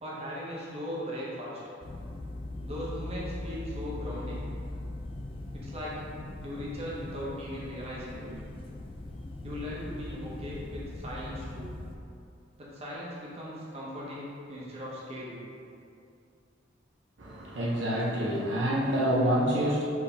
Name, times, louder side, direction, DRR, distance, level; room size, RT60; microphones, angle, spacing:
voice 1, 0.0-1.6 2.6-4.4 5.5-6.0 6.4-8.3 9.4-11.7 12.6-15.4, equal, 35° right, -6 dB, 1.0 m, -38 dB
sound 1, 1.8-12.0, left 2 dB, 30° left, 0.3 m, -40 dB
voice 2, 17.2-19.8, equal, 75° right, -5 dB, 0.7 m, -27 dB
4.7 x 3.3 x 3.3 m, 2.5 s
head